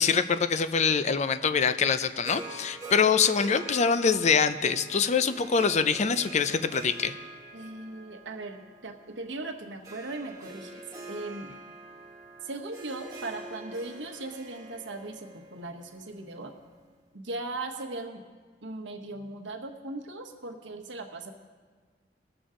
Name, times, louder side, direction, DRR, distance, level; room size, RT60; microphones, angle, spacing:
voice 1, 0.0-7.1, left 6 dB, 40° left, 12 dB, 0.5 m, -24 dB
Harp, 2.2-16.6, right 2 dB, 20° right, 1.4 m, -45 dB
voice 2, 7.5-11.5 12.4-16.5 17.1-18.2 18.6-21.3, right 2 dB, 90° right, 3 dB, 1.2 m, -38 dB
19.5 x 7.0 x 3.7 m, 1.4 s
head